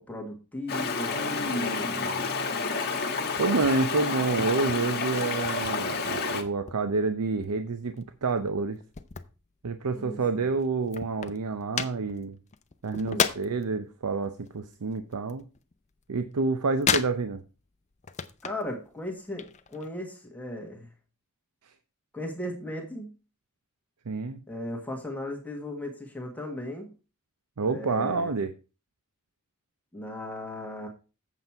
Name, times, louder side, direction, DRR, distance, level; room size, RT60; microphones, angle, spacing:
voice 1, 0.0-2.3 9.9-10.5 13.0-13.3 18.4-20.9 22.1-23.1 24.5-26.9 27.7-28.3 29.9-30.9, left 1 dB, 5° left, 1.6 m, -37 dB
Stream, 0.7-6.4, left 4 dB, 45° left, 1.3 m, -29 dB
sound 1, 3.4-3.8 4.1-5.8 6.1-7.1 7.4-10.0 10.3-10.4 10.6-13.7 14.1-16.0 16.2-17.6 17.9-18.7 19.1-19.9, left 7 dB, 30° left, 0.6 m, -33 dB
voice 2, 3.4-8.8 9.6-12.4 12.8-15.5 16.1-17.4 24.1-24.4 27.6-28.5, right 4 dB, 85° right, 0.6 m, -28 dB
8.1 x 7.2 x 4.5 m
head